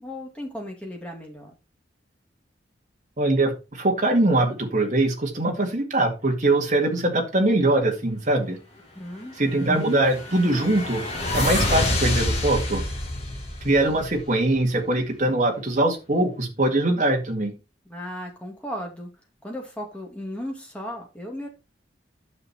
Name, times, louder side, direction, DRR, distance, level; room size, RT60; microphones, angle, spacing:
voice 1, 0.0-1.5 8.9-9.4 17.9-19.1 19.4-21.5, equal, 5° left, 0 dB, 2.3 m, -35 dB
voice 2, 3.2-8.6 9.4-11.0 11.3-12.8 13.6-17.5, right 2 dB, 40° right, 2 dB, 2.1 m, -22 dB
sound 1, 9.6-14.5, left 2 dB, 35° left, 2.4 m, -27 dB
9.5 x 6.3 x 4.3 m, 0.29 s
head